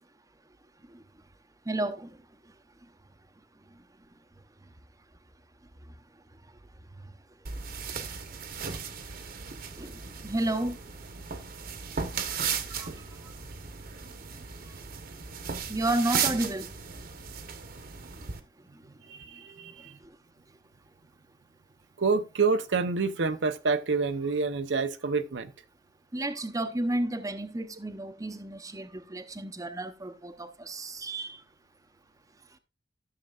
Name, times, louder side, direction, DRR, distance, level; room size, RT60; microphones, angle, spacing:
voice 1, 1.7-2.2 9.8-10.8 12.2-13.3 15.7-16.7 20.0-20.1 26.1-31.4, right 1 dB, 20° right, 0.7 m, -32 dB
sound 1, 7.4-18.4, right 6 dB, 55° right, 1.0 m, -36 dB
voice 2, 19.1-20.0 22.0-25.5, right 4 dB, 85° right, 0.7 m, -28 dB
14.0 x 6.6 x 2.4 m
head